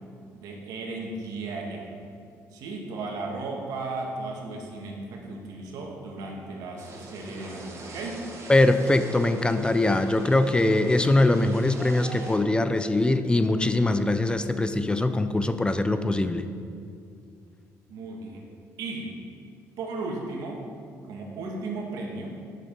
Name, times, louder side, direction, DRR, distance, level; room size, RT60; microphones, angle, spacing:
voice 1, 0.3-2.0 2.5-8.2 17.9-18.4 18.8-19.1 19.8-20.6 21.0-22.3, right 3 dB, 80° right, 0 dB, 1.7 m, -35 dB
sound 1, 6.8-12.4, right 2 dB, 50° right, 1.7 m, -42 dB
voice 2, 8.5-16.5, left 2 dB, 15° left, 10 dB, 0.5 m, -22 dB
8.3 x 6.7 x 5.4 m, 2.4 s
cardioid pair, 85°, 6 cm